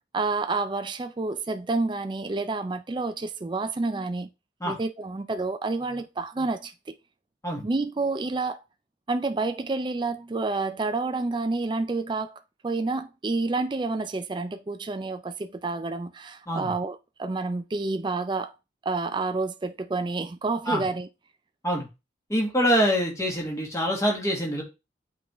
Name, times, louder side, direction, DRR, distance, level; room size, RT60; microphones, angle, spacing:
voice 1, 0.1-4.3 4.6-7.0 7.6-8.6 9.1-18.5 18.8-21.1, right 3 dB, 25° right, 0.3 m, -29 dB
voice 2, 22.3-24.6, equal, 15° left, 1.6 m, -25 dB
8.4 x 3.7 x 3.0 m
head